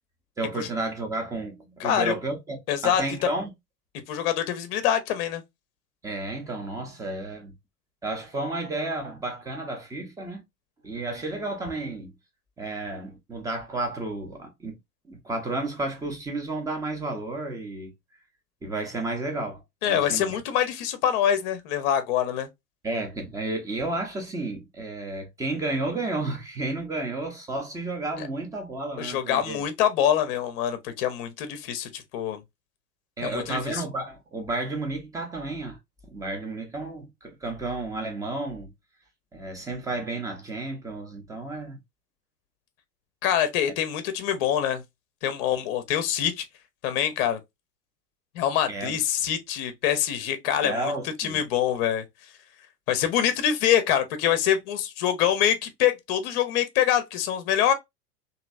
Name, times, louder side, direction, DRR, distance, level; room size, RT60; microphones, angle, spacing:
voice 1, 0.4-3.5 6.0-7.5 8.0-10.4 10.8-12.2 12.6-14.8 15.0-17.9 18.6-20.4 22.8-29.6 33.2-35.8 36.1-38.7 39.3-41.8 48.7-49.0 50.6-51.4, right 2 dB, 5° right, 0.6 m, -32 dB
voice 2, 1.8-2.1 2.7-3.3 4.1-5.4 19.8-22.5 28.2-28.3 29.0-32.4 33.2-33.8 43.2-44.8 45.2-46.4 46.8-47.4 48.3-50.9 51.2-52.0 52.9-57.7, left 10 dB, 35° left, 0.7 m, -25 dB
3.0 x 2.7 x 2.5 m
figure-of-eight pair, 95°, 48 cm